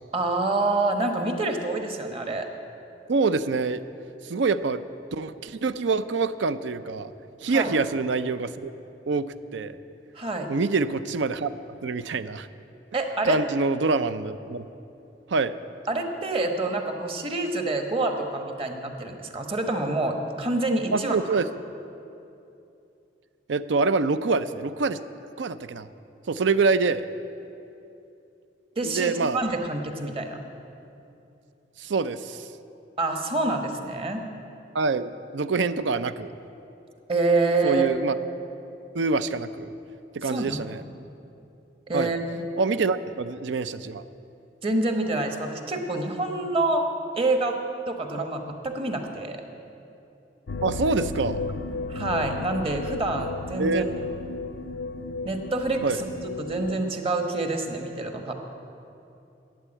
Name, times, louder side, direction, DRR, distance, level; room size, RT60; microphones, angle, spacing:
voice 1, 0.1-2.5 7.5-7.7 10.1-10.5 12.9-13.4 15.9-21.2 28.8-30.4 33.0-34.3 37.1-37.9 40.2-40.7 41.9-42.2 44.6-46.9 47.1-47.6 47.9-49.4 51.9-53.8 55.2-56.1 56.4-58.3, right 2 dB, 30° right, 4 dB, 1.2 m, -27 dB
voice 2, 3.1-3.8 4.2-4.8 5.1-7.1 7.4-8.7 9.1-9.3 9.5-9.8 10.5-11.5 11.8-12.5 13.2-14.7 15.3-15.5 20.9-21.6 23.5-25.0 25.4-25.9 26.3-27.1 28.8-29.4 31.8-32.5 34.7-36.3 37.6-38.1 38.9-39.7 40.1-40.8 41.9-42.1 42.6-44.0 48.2-48.3 50.6-51.4 53.6-53.9 55.8-56.0, right 4 dB, 85° right, 13 dB, 0.5 m, -25 dB
sound 1, 50.5-56.8, left 3 dB, 75° left, 0.5 m, -33 dB
13.0 x 8.0 x 8.9 m, 2.7 s
head